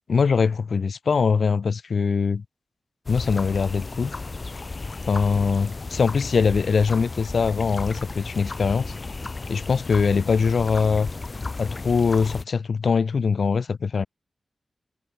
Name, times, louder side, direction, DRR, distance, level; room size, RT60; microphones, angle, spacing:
voice 1, 0.1-2.4 3.1-4.1 5.1-8.9 9.5-11.1 11.6-14.1, left 5 dB, 55° left, 0.6 m, -22 dB
sound 1, 3.1-12.4, left 3 dB, 30° left, 1.7 m, -34 dB
wide cardioid pair, 170°, 0 cm